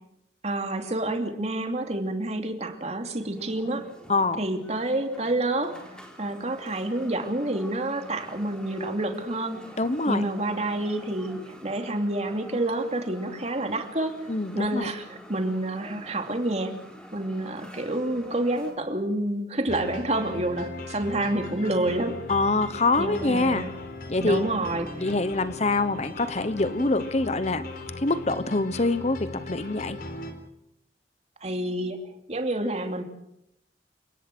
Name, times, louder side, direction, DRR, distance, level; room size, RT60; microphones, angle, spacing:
voice 1, 0.4-3.9 4.4-9.6 10.1-14.2 14.5-16.7 17.1-22.1 23.0-23.7 24.2-25.1 31.4-32.0 32.3-33.0, right 1 dB, 40° right, 5 dB, 2.8 m, -28 dB
sound 1, 3.2-18.7, equal, 5° left, 3.8 m, -47 dB
voice 2, 4.1-4.4 9.8-10.2 14.3-14.9 22.3-23.7 24.1-24.4 25.0-27.7 28.0-30.0, left 2 dB, 40° left, 13 dB, 1.0 m, -25 dB
sound 2, 19.7-30.3, left 2 dB, 55° left, 3.9 m, -38 dB
29.5 x 18.5 x 6.2 m, 0.79 s
head